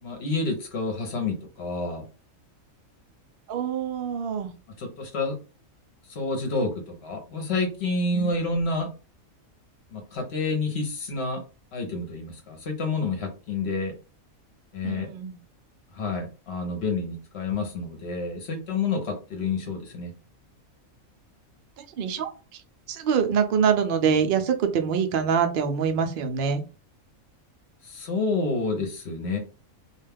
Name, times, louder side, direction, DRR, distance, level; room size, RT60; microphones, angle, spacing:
voice 1, 0.0-2.1 4.8-5.4 6.1-8.9 9.9-11.4 11.7-13.9 14.7-15.1 15.9-20.1 27.8-29.4, left 3 dB, 55° left, 3 dB, 0.9 m, -29 dB
voice 2, 3.5-4.5 8.1-8.3 14.8-15.4 21.8-22.3 22.9-26.6, right 7 dB, 65° right, 6 dB, 0.5 m, -25 dB
2.4 x 2.2 x 3.3 m, 0.33 s
omnidirectional pair, 1.5 m